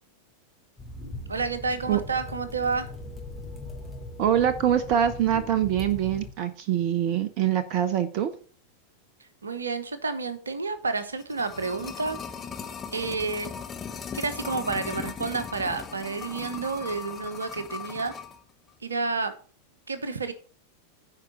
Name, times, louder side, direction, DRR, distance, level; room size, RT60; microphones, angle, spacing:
sound 1, 0.8-6.3, left 2 dB, 5° left, 2.7 m, -40 dB
voice 1, 1.3-2.9 9.2-12.2 12.9-13.5 14.1-18.1 18.8-19.3 19.9-20.3, right 4 dB, 75° right, 1.1 m, -30 dB
voice 2, 4.2-8.3, right 10 dB, 40° right, 0.7 m, -24 dB
sound 2, 11.0-18.4 18.7-18.8, left 7 dB, 20° left, 1.1 m, -38 dB
9.3 x 4.9 x 7.0 m
figure-of-eight pair, 90°, 0 cm